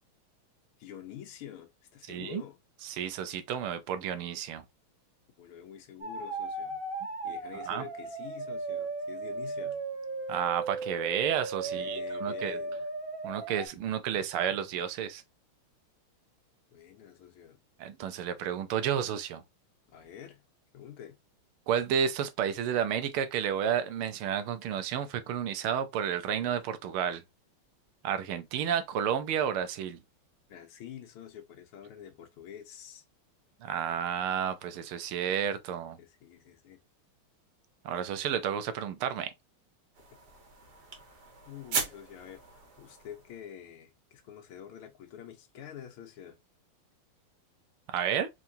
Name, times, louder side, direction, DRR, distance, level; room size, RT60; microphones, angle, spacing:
voice 1, 0.8-2.6 5.4-6.8 7.2-9.8 11.6-12.8 16.7-17.6 19.9-20.4 20.7-21.2 30.5-33.0 36.0-36.8 41.5-46.4, left 9 dB, 85° left, 1.8 m, -47 dB
voice 2, 2.1-2.4 2.9-4.6 7.7-7.8 10.3-12.6 13.2-15.2 17.8-19.4 21.7-27.2 28.0-30.0 33.6-36.0 37.8-39.3 47.9-48.3, right 8 dB, 85° right, 1.6 m, -31 dB
sound 1, 6.0-13.7, right 3 dB, 35° right, 1.1 m, -36 dB
sound 2, 39.9-43.5, right 5 dB, 55° right, 1.6 m, -38 dB
4.5 x 3.6 x 2.7 m
omnidirectional pair, 2.3 m